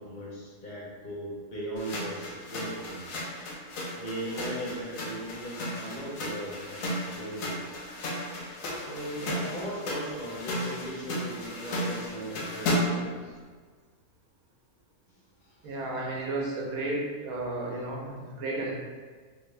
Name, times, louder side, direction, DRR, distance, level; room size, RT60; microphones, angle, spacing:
voice 1, 0.0-3.2 3.9-7.8 8.7-13.4 15.4-15.7, right 1 dB, 45° left, -7 dB, 0.7 m, -38 dB
sound 1, 1.8-13.1, left 1 dB, 70° left, 1.0 m, -34 dB
voice 2, 9.2-9.5 15.6-18.7, right 2 dB, 80° right, -2 dB, 1.2 m, -33 dB
3.4 x 2.5 x 3.1 m, 1.5 s
omnidirectional pair, 1.5 m